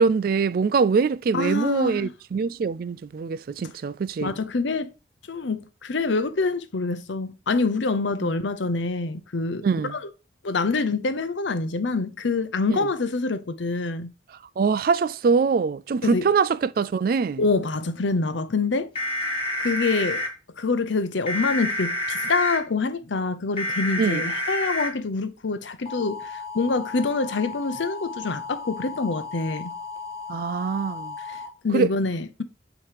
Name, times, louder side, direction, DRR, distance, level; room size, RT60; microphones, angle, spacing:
voice 1, 0.0-4.4 8.2-8.3 9.6-9.9 12.7-12.8 14.6-17.4 24.0-24.2 30.3-31.1 31.7-31.9, right 5 dB, 50° right, 0.3 m, -23 dB
voice 2, 1.3-2.1 4.2-4.9 5.3-10.1 10.4-14.1 16.0-16.3 17.4-18.9 19.6-20.2 20.6-29.7 31.3-31.4 31.6-32.4, left 3 dB, 75° left, 0.7 m, -26 dB
sound 1, 19.0-20.3 21.3-22.6 23.6-24.9 25.9-31.5, left 1 dB, 30° left, 1.6 m, -31 dB
8.7 x 3.0 x 5.0 m
head